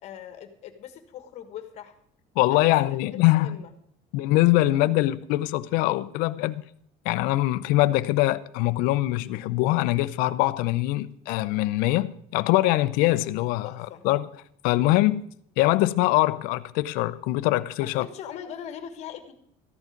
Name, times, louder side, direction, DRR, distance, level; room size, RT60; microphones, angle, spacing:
voice 1, 0.0-1.9 2.5-3.7 13.6-14.0 17.8-19.3, left 9 dB, 45° left, 1.5 m, -41 dB
voice 2, 2.4-3.6 4.1-6.6 7.0-13.7 14.0-14.3 14.6-15.2 15.6-18.1, left 17 dB, 75° left, 0.7 m, -23 dB
14.0 x 11.0 x 5.2 m
cardioid pair, 160°, 15 cm